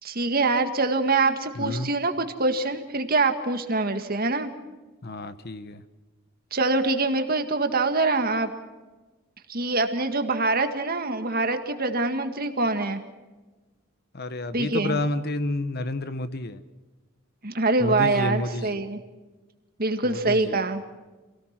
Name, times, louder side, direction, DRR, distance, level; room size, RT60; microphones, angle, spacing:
voice 1, 0.0-4.5 6.5-8.5 9.5-13.0 14.5-15.0 17.4-19.0 19.8-20.8, right 3 dB, 45° right, 7 dB, 1.9 m, -24 dB
voice 2, 1.5-1.9 5.0-5.8 14.1-16.6 17.8-18.8 20.0-20.6, left 2 dB, 50° left, 12 dB, 1.1 m, -30 dB
27.0 x 18.0 x 6.0 m, 1.2 s
head